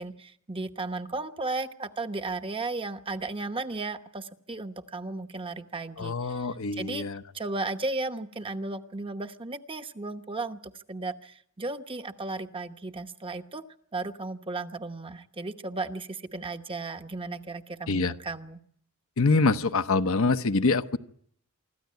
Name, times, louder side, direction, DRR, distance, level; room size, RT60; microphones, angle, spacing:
voice 1, 0.0-7.1 7.3-13.6 13.9-18.6, right 3 dB, 25° right, 8 dB, 1.0 m, -35 dB
voice 2, 6.0-7.2 17.9-18.1 19.2-21.0, left 3 dB, 65° left, 10 dB, 0.9 m, -25 dB
25.5 x 14.0 x 9.5 m, 0.67 s
head